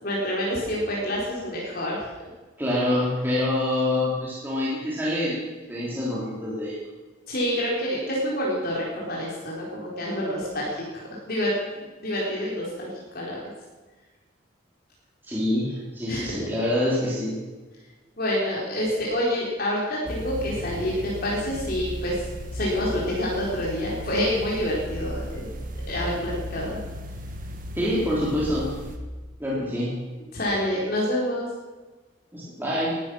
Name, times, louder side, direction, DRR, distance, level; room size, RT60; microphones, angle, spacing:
voice 1, 0.0-2.1 7.3-13.4 16.1-16.4 18.2-22.2 22.5-25.5 25.9-26.8 30.3-31.5, equal, 55° left, -5 dB, 3.9 m, -27 dB
voice 2, 2.6-5.4 5.7-6.9 15.2-17.4 27.7-28.7 29.4-30.0 32.3-33.0, left 1 dB, 10° right, -7 dB, 3.3 m, -26 dB
sound 1, 20.1-29.0, equal, 50° right, 1.8 m, -35 dB
19.5 x 11.5 x 6.2 m, 1.3 s
head